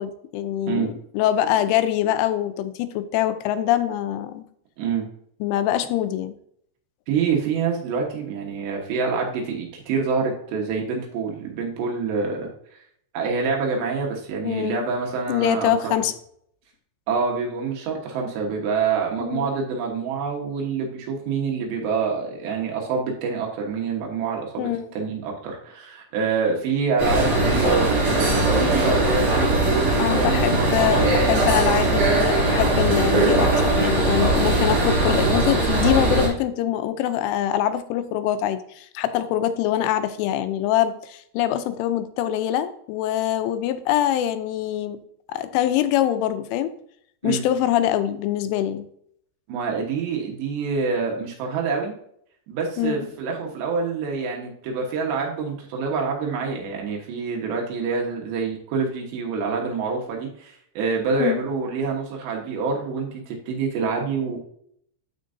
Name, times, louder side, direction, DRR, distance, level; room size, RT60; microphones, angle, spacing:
voice 1, 0.0-4.4 5.4-6.3 14.4-14.9 15.3-16.1 19.2-19.5 24.6-24.9 30.0-45.0 45.3-46.7 47.2-48.9 52.8-53.1 61.2-61.4, left 11 dB, 85° left, 10 dB, 3.1 m, -24 dB
voice 2, 7.1-12.5 13.1-16.0 17.1-31.7 47.2-47.5 49.5-51.9 52.5-64.4, right 5 dB, 70° right, 0 dB, 3.2 m, -26 dB
sound 1, 27.0-36.3, right 2 dB, 40° right, 3.4 m, -20 dB
12.5 x 4.6 x 2.7 m, 0.67 s
omnidirectional pair, 5.5 m